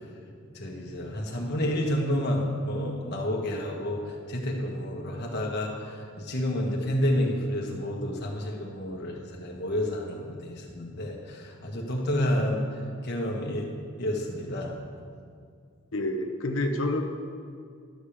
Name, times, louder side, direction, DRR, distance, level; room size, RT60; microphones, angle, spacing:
voice 1, 0.5-12.7 13.0-13.7 14.0-14.8, equal, 50° left, -1 dB, 1.5 m, -30 dB
voice 2, 15.9-17.0, left 1 dB, 75° left, 4 dB, 0.9 m, -28 dB
12.0 x 5.0 x 7.2 m, 2.2 s
head